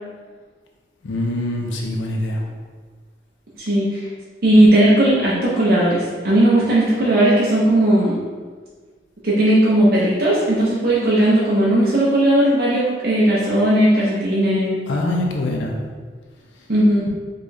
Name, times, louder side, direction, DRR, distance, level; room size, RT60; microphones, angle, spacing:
voice 1, 1.0-2.5 14.9-15.8, left 1 dB, 90° left, 0 dB, 0.5 m, -24 dB
voice 2, 3.7-4.0 4.4-8.2 9.2-14.7 16.7-17.1, right 1 dB, 50° right, -7 dB, 0.6 m, -16 dB
4.7 x 2.3 x 2.6 m, 1.5 s
head